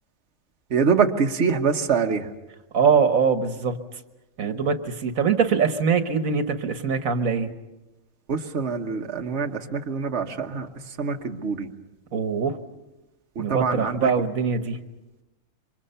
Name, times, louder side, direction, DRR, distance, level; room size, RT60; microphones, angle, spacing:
voice 1, 0.7-2.3 8.3-10.7 11.0-11.7 13.5-14.1, right 5 dB, 60° right, 3 dB, 1.5 m, -24 dB
voice 2, 2.7-3.8 4.4-7.5 12.1-12.6 13.4-14.8, right 6 dB, 80° right, 8 dB, 1.6 m, -22 dB
28.0 x 25.0 x 5.7 m, 1.0 s
omnidirectional pair, 1.4 m